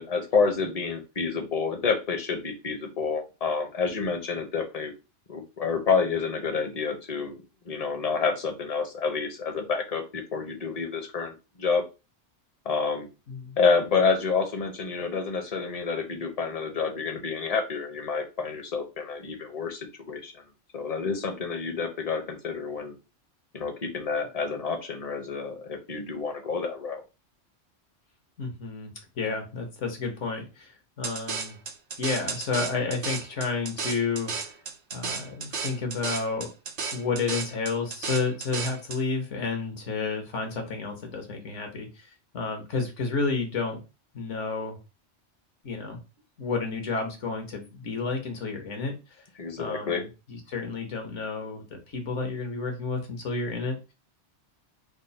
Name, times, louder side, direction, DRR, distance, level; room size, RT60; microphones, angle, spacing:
voice 1, 0.0-4.9 5.3-7.3 7.7-11.8 12.7-13.1 13.6-20.4 20.7-22.9 23.5-27.0 49.4-50.0, left 5 dB, 40° left, 5 dB, 0.6 m, -28 dB
voice 2, 13.3-13.6 28.4-31.6 32.0-34.3 34.9-36.5 36.9-43.8 44.1-44.8 45.6-46.0 46.4-49.2 49.6-53.9, left 4 dB, 80° left, 4 dB, 1.3 m, -31 dB
sound 1, 31.0-39.0, right 5 dB, 50° right, 0.5 m, -34 dB
3.6 x 2.0 x 3.9 m, 0.29 s
omnidirectional pair, 1.2 m